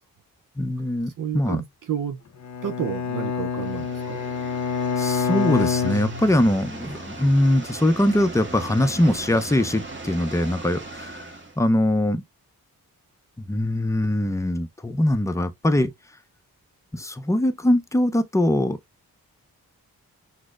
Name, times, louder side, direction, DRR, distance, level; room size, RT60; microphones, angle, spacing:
voice 1, 0.6-1.6 5.0-12.2 13.4-15.9 16.9-18.8, left 1 dB, 10° left, 0.6 m, -22 dB
voice 2, 1.2-2.2 2.6-4.2, right 9 dB, 55° right, 0.6 m, -30 dB
Bowed string instrument, 2.4-6.8, left 6 dB, 50° left, 0.7 m, -27 dB
sound 1, 3.5-11.6, right 2 dB, 30° right, 1.4 m, -38 dB
6.1 x 2.1 x 2.4 m
cardioid pair, 45°, 38 cm